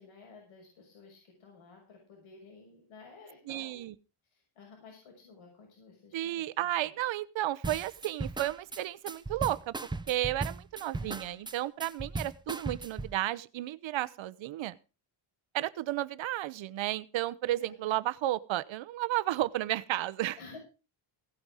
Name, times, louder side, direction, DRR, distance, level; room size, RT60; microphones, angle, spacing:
voice 1, 0.0-3.8 4.3-6.3 6.6-6.9 11.0-11.4 17.6-18.0 20.4-20.6, left 4 dB, 75° left, 0 dB, 6.5 m, -53 dB
voice 2, 3.5-3.9 6.1-14.8 15.5-20.4, right 14 dB, 70° right, 17 dB, 0.9 m, -33 dB
sound 1, 7.6-13.1, right 3 dB, 10° right, 0.7 m, -37 dB
17.0 x 9.3 x 4.8 m, 0.33 s
cardioid pair, 150°, 49 cm